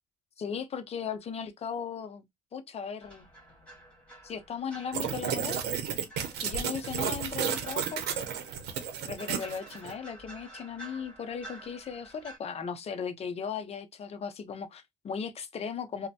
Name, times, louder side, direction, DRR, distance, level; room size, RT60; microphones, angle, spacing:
voice 1, 0.4-2.2 2.5-3.3 4.2-5.7 6.4-8.0 9.1-16.1, left 6 dB, 35° left, 0.6 m, -37 dB
sound 1, 3.0-12.4, right 1 dB, 5° left, 1.5 m, -50 dB
sound 2, 4.9-9.9, right 8 dB, 80° right, 0.7 m, -32 dB
3.0 x 2.1 x 2.7 m
cardioid pair, 110°, 17 cm